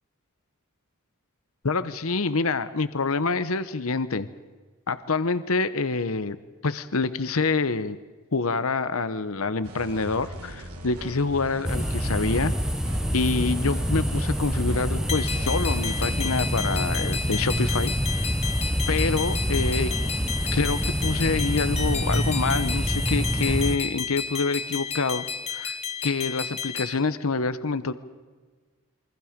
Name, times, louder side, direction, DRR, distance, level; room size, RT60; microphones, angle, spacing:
voice 1, 1.6-4.3 4.9-6.4 6.6-8.0 8.3-12.5 13.1-18.3 18.9-19.9 20.5-25.3 25.5-25.8 26.0-27.9, left 4 dB, 70° left, 13 dB, 1.0 m, -26 dB
sound 1, 9.6-16.2, equal, 85° right, 3.7 m, -39 dB
sound 2, 11.6-23.8, equal, 5° right, 0.8 m, -26 dB
sound 3, 15.1-26.9, left 6 dB, 30° left, 1.3 m, -32 dB
28.0 x 24.0 x 5.2 m, 1.4 s
head